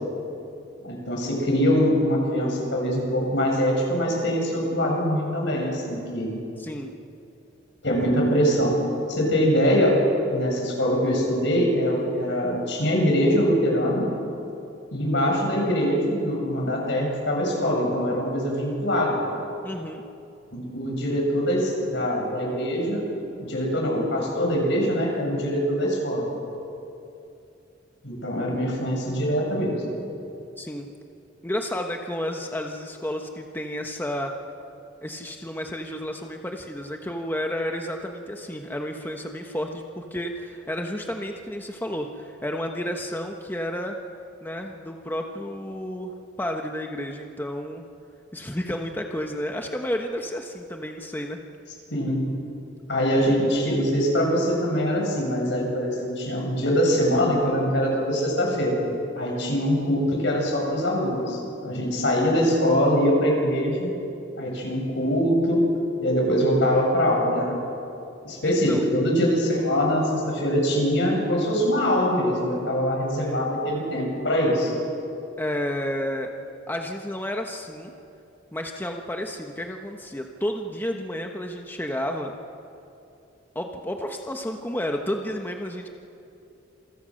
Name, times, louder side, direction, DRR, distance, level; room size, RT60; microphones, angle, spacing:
voice 1, 0.8-6.3 7.8-8.8 9.1-10.0 10.3-14.1 14.9-19.2 20.5-23.1 23.4-26.3 28.0-29.7 51.9-52.2 52.9-58.8 59.2-63.9 64.4-65.6 66.0-67.5 68.2-74.7, equal, 70° left, -1 dB, 7.7 m, -23 dB
voice 2, 6.6-6.9 19.6-20.0 30.6-30.9 31.4-34.3 35.0-44.0 44.4-47.8 48.3-51.4 68.4-68.8 73.2-73.5 75.4-76.3 76.7-77.9 78.5-82.3 83.5-85.9, equal, 10° left, 2 dB, 1.2 m, -31 dB
28.0 x 24.0 x 6.5 m, 2.7 s
head